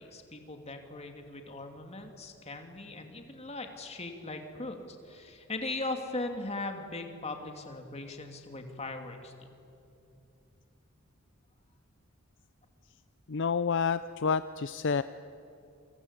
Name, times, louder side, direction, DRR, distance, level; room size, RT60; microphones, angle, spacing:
voice 1, 0.0-9.3, left 2 dB, 30° left, 4 dB, 2.7 m, -39 dB
voice 2, 13.3-15.0, left 5 dB, 60° left, 13 dB, 0.6 m, -29 dB
29.0 x 25.0 x 8.3 m, 2.7 s
head